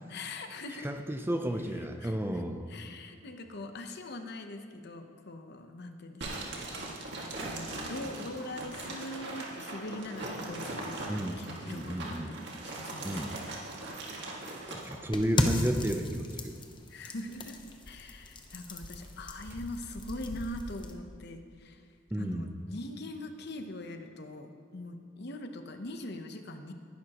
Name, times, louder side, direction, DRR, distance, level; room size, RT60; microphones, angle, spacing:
voice 1, 0.1-0.9 2.0-2.4 2.7-7.2 7.5-13.2 16.9-17.6 17.9-21.8 22.2-26.7, left 1 dB, 60° left, 6 dB, 0.9 m, -42 dB
voice 2, 0.8-2.7 11.1-12.3 13.0-13.4 13.9-14.1 14.7-16.5 22.1-22.5, right 1 dB, 10° right, 6 dB, 0.6 m, -33 dB
sound 1, 6.2-15.0, right 2 dB, 60° right, 2.0 m, -40 dB
sound 2, 15.1-20.9, left 1 dB, 25° left, 0.9 m, -35 dB
18.5 x 11.0 x 3.0 m, 2.1 s
head